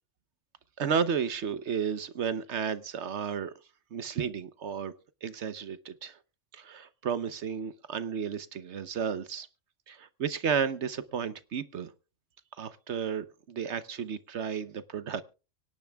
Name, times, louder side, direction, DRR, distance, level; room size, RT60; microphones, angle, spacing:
voice 1, 0.8-3.5 3.9-4.9 5.2-6.2 6.5-9.5 9.9-11.9 12.6-15.2, right 7 dB, 65° right, 1.1 m, -32 dB
24.5 x 10.5 x 2.3 m
omnidirectional pair, 1.3 m